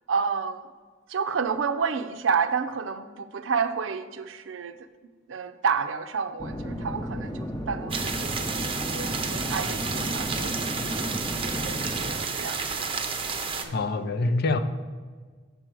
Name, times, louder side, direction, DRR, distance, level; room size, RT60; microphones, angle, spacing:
voice 1, 0.1-0.7 1.1-4.9 5.3-12.9 13.6-13.9, right 6 dB, 75° right, 9 dB, 0.5 m, -30 dB
sound 1, 6.4-12.1, equal, 20° left, 0.8 m, -33 dB
sound 2, 7.9-13.6, right 5 dB, 30° right, 0.6 m, -31 dB
voice 2, 13.7-14.6, left 3 dB, 55° left, 9 dB, 0.5 m, -25 dB
7.0 x 4.5 x 6.1 m, 1.5 s
head